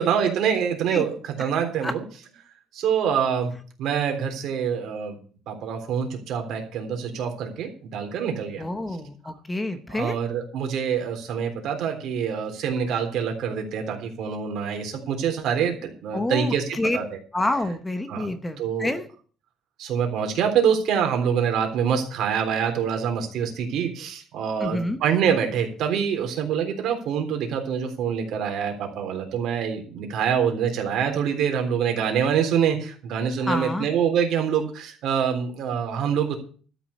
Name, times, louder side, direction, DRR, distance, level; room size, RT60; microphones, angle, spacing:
voice 1, 0.0-2.0 2.7-3.5 3.8-5.2 5.5-8.6 9.9-17.2 18.1-18.3 18.6-18.9 19.8-36.3, right 7 dB, 60° right, 4 dB, 3.6 m, -25 dB
voice 2, 8.6-10.2 16.1-17.1 17.3-19.1 24.6-25.0 33.4-33.9, left 1 dB, 10° left, 10 dB, 0.9 m, -28 dB
12.5 x 6.2 x 8.4 m, 0.42 s
cardioid pair, 155°, 0 cm